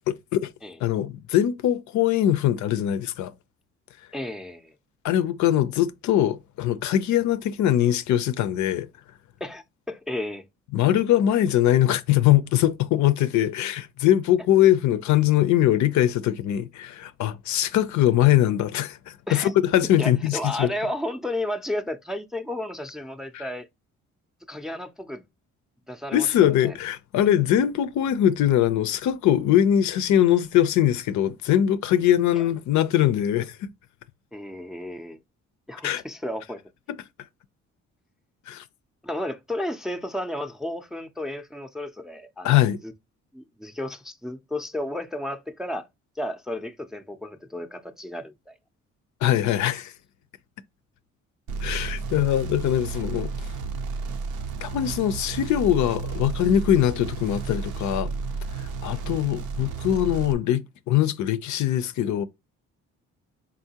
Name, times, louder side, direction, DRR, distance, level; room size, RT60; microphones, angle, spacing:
voice 1, 0.1-0.5 0.8-3.3 5.0-8.9 10.7-20.7 23.3-23.5 26.1-33.7 35.8-36.0 36.9-37.0 38.5-38.6 42.4-42.8 49.2-49.9 51.6-53.5 54.6-58.1 58.6-62.3, left 11 dB, 70° left, 0.4 m, -22 dB
voice 2, 4.1-4.7 9.4-10.4 19.3-19.5 20.0-23.7 24.5-25.2 25.9-26.3 26.6-26.8 32.4-32.5 34.3-35.2 35.7-36.6 39.0-42.5 42.8-42.9 43.3-45.9 46.2-48.5 58.9-59.0, left 1 dB, ahead, 0.4 m, -33 dB
sound 1, 51.5-60.3, right 4 dB, 90° right, 0.7 m, -32 dB
3.9 x 3.6 x 2.8 m
cardioid pair, 90°, 30 cm